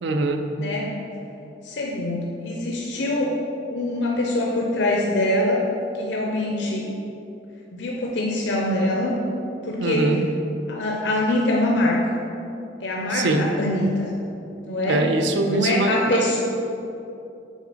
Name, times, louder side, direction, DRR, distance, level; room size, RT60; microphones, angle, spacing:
voice 1, 0.0-0.5 9.8-10.3 13.1-13.5 14.9-16.4, right 2 dB, 75° right, 5 dB, 0.5 m, -23 dB
voice 2, 0.6-1.0 1.6-3.3 3.7-5.6 5.9-6.8 7.7-9.2 9.6-10.1 10.7-12.2 12.8-14.1 14.7-15.0 15.5-16.4, left 1 dB, 75° left, -2 dB, 0.7 m, -24 dB
6.4 x 3.8 x 5.1 m, 2.8 s
head